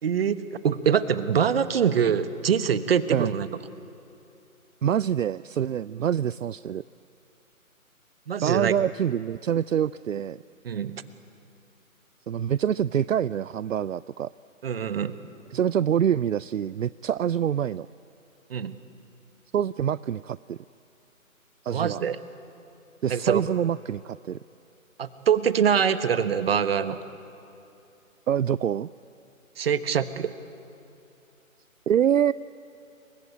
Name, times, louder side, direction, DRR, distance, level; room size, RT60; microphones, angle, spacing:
voice 1, 0.0-3.5 8.3-8.7 10.6-11.0 14.6-15.1 18.5-18.7 21.7-22.2 23.1-23.4 25.0-27.0 29.6-30.3, right 7 dB, 45° right, 13 dB, 1.3 m, -24 dB
voice 2, 4.8-6.8 8.4-10.4 12.3-14.3 15.5-17.9 19.5-20.6 21.6-22.0 23.0-24.4 28.3-28.9 31.9-32.3, right 9 dB, 65° right, 19 dB, 0.5 m, -25 dB
28.0 x 24.0 x 9.0 m, 2.8 s
figure-of-eight pair, 145°, 42 cm